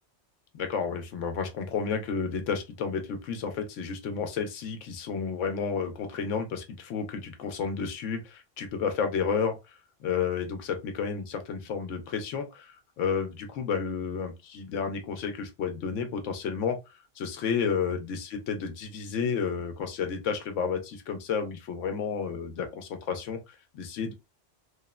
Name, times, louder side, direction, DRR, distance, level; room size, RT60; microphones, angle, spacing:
voice 1, 0.5-9.7 10.0-16.8 17.2-24.1, left 6 dB, 90° left, 1.0 m, -31 dB
3.0 x 2.0 x 2.2 m
omnidirectional pair, 1.2 m